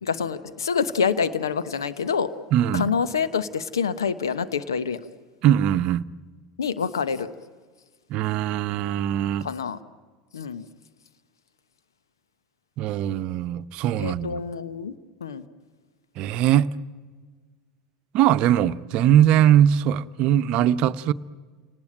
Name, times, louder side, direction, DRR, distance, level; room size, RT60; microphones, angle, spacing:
voice 1, 0.0-2.3 2.7-5.0 6.6-7.3 9.4-9.8 10.3-10.7 14.0-14.9 15.2-15.5, left 6 dB, 85° left, 1.1 m, -26 dB
voice 2, 2.5-2.9 5.4-6.1 8.1-9.5 12.8-14.4 16.2-16.7 18.1-21.1, right 11 dB, 50° right, 0.8 m, -21 dB
30.0 x 19.0 x 9.0 m
hypercardioid pair, 85°, 2 cm